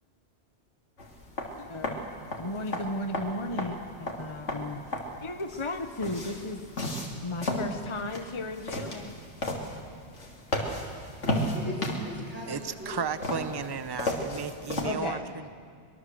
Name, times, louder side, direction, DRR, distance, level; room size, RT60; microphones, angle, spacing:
sound 1, 1.0-14.9, left 1 dB, 85° left, 3.2 m, -34 dB
voice 1, 1.6-2.0 2.4-4.9 5.2-6.6 7.2-9.2 14.8-15.3, left 2 dB, 25° left, 6 dB, 1.1 m, -35 dB
voice 2, 11.4-14.0, left 1 dB, 10° right, -2 dB, 6.0 m, -41 dB
voice 3, 12.5-15.5, right 6 dB, 25° right, 13 dB, 0.7 m, -34 dB
23.5 x 22.5 x 7.8 m, 2.3 s
omnidirectional pair, 1.2 m